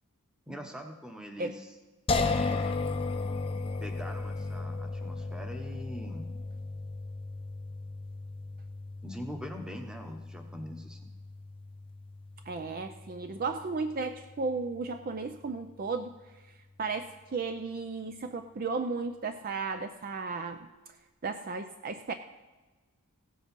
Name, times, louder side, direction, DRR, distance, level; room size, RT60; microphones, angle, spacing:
voice 1, 0.5-1.7 2.1-2.9 3.8-6.3 9.0-11.0, equal, 5° right, 4 dB, 1.1 m, -42 dB
sound 1, 2.1-15.2, left 3 dB, 25° left, 0.5 m, -36 dB
voice 2, 12.5-16.1 16.8-20.7 21.2-22.1, right 4 dB, 40° right, 8 dB, 0.5 m, -34 dB
16.0 x 7.6 x 5.3 m, 1.2 s
head